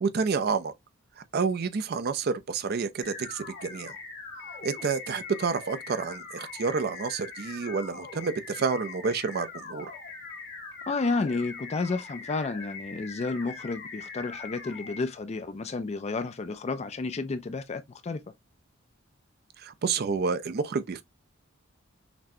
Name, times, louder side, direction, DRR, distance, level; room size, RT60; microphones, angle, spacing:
voice 1, 0.0-0.7 1.3-3.9 4.6-9.9 19.6-21.0, right 5 dB, 50° right, 0.5 m, -29 dB
sound 1, 3.0-15.0, left 4 dB, 60° left, 1.3 m, -42 dB
voice 2, 10.9-18.2, left 3 dB, 30° left, 0.4 m, -31 dB
5.9 x 2.1 x 2.6 m
head